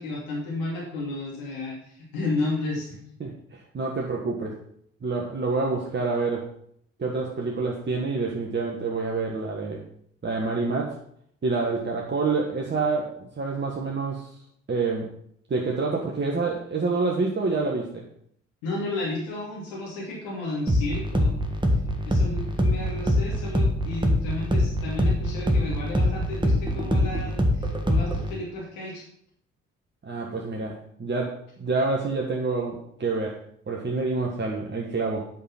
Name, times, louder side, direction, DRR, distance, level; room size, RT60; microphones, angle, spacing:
voice 1, 0.0-3.0 18.6-21.4 22.0-29.0, left 2 dB, 65° left, -4 dB, 2.7 m, -32 dB
voice 2, 3.2-4.6 5.0-6.5 7.0-9.8 10.2-11.0 11.4-14.3 14.7-15.1 15.5-18.0 30.0-33.4 33.7-35.3, right 3 dB, 30° right, -2 dB, 1.5 m, -27 dB
sound 1, 20.7-28.3, equal, 10° right, 1.6 m, -24 dB
9.4 x 5.3 x 5.9 m, 0.67 s
figure-of-eight pair, 45°, 38 cm